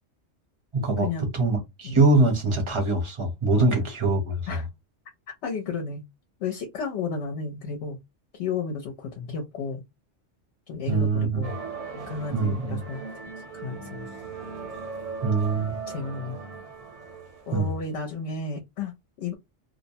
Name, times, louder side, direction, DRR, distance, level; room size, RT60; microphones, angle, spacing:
voice 1, 0.7-4.6 10.9-11.4 12.3-12.8 15.2-15.8 17.5-17.7, right 3 dB, 30° right, 0.6 m, -23 dB
voice 2, 3.5-3.9 4.5-4.6 5.4-6.0 6.4-8.0 8.3-9.8 10.7-11.6 11.9-13.0 13.5-14.1 15.9-16.4 17.5-19.3, left 4 dB, 70° left, 0.9 m, -33 dB
sound 1, 11.4-18.0, right 5 dB, 75° right, 1.2 m, -38 dB
2.6 x 2.0 x 2.6 m
omnidirectional pair, 1.2 m